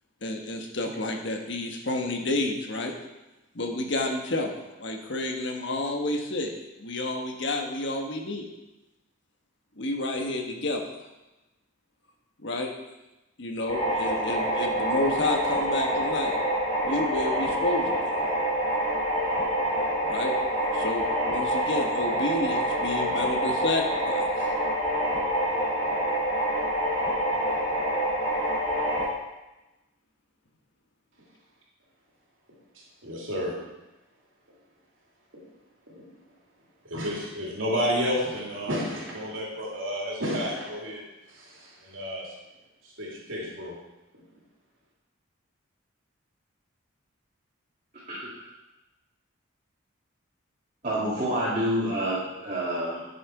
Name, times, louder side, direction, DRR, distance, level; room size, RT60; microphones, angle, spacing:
voice 1, 0.2-2.9 3.5-8.5 9.8-10.8 12.4-12.7 13.4-16.3 16.8-18.2 20.0-20.3 20.7-24.5, left 2 dB, 55° left, 3 dB, 1.3 m, -30 dB
sound 1, 13.7-29.0, equal, 30° left, 3.1 m, -26 dB
voice 2, 33.0-33.6 35.3-35.4 36.0-36.1 36.9-41.0 41.3-42.2 43.0-43.7, equal, 70° right, -4 dB, 3.1 m, -31 dB
voice 3, 50.8-53.1, equal, 35° right, -9 dB, 2.5 m, -28 dB
11.0 x 6.8 x 4.7 m, 1.0 s
head